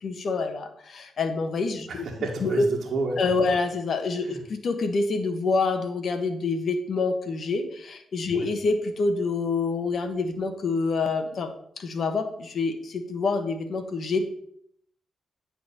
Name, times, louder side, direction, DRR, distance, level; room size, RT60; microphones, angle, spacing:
voice 1, 0.0-1.9 2.4-2.7 3.2-14.2, left 3 dB, 65° left, 7 dB, 1.3 m, -27 dB
voice 2, 1.9-3.2 4.2-4.4 8.3-8.5, right 3 dB, 65° right, -4 dB, 1.5 m, -30 dB
9.3 x 4.0 x 6.6 m, 0.69 s
cardioid pair, 65°, 0 cm